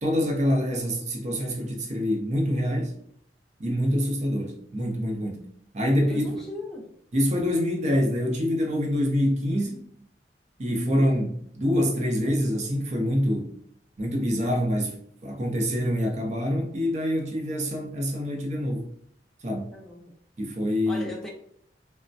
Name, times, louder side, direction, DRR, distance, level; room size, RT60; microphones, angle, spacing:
voice 1, 0.0-2.9 3.6-5.4 5.7-6.2 7.1-9.8 10.6-13.5 14.0-14.9 15.2-18.9 19.4-19.8 20.4-21.1, equal, 40° right, 1 dB, 0.6 m, -25 dB
voice 2, 6.1-6.8 19.7-20.1 20.9-21.3, left 2 dB, 5° left, -2 dB, 0.6 m, -38 dB
3.2 x 2.1 x 2.6 m, 0.67 s
head